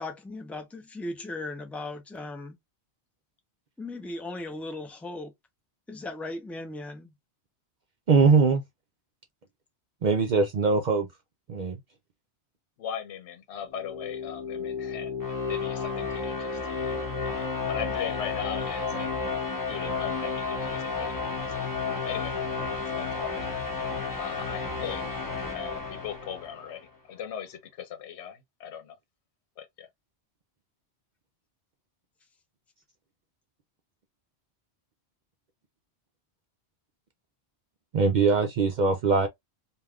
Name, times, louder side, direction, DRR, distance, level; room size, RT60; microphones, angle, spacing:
voice 1, 0.0-2.5 3.8-5.3 5.9-7.1, left 2 dB, ahead, 0.4 m, -37 dB
voice 2, 8.1-8.6 10.0-11.1 11.5-11.8 37.9-39.3, right 4 dB, 60° right, 0.5 m, -22 dB
voice 3, 12.8-15.1 15.5-19.3 19.7-21.6 22.0-22.3 22.9-25.2 25.5-29.0 29.6-29.9, left 8 dB, 80° left, 0.9 m, -39 dB
sound 1, 13.6-26.8, left 4 dB, 20° left, 0.9 m, -32 dB
3.4 x 2.4 x 2.3 m
omnidirectional pair, 1.1 m